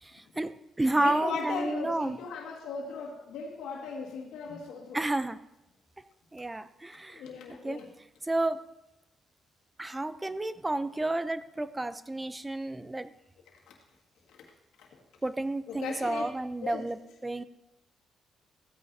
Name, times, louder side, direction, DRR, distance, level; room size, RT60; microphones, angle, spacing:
voice 1, 0.0-2.2 4.9-5.4 6.3-7.8 8.2-8.6 9.8-13.1 15.2-17.4, right 2 dB, 15° right, 13 dB, 0.5 m, -31 dB
voice 2, 0.9-5.0 7.1-7.9 13.7-13.8 14.3-14.5 14.8-15.0 15.7-16.3 16.6-16.8, left 5 dB, 85° left, -1 dB, 1.8 m, -37 dB
15.0 x 9.0 x 2.7 m, 0.91 s
cardioid pair, 90°, 0 cm